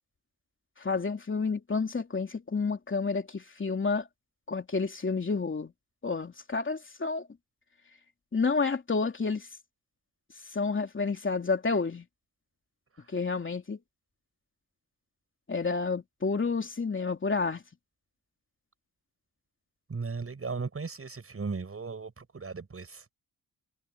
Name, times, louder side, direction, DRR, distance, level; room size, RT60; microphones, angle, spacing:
voice 1, 0.8-4.1 4.5-5.7 6.0-7.3 8.3-9.5 10.5-12.0 13.1-13.8 15.5-17.6, left 4 dB, 35° left, 3.0 m, -30 dB
voice 2, 19.9-23.1, right 4 dB, 40° right, 6.9 m, -36 dB
cardioid pair, 80°, 34 cm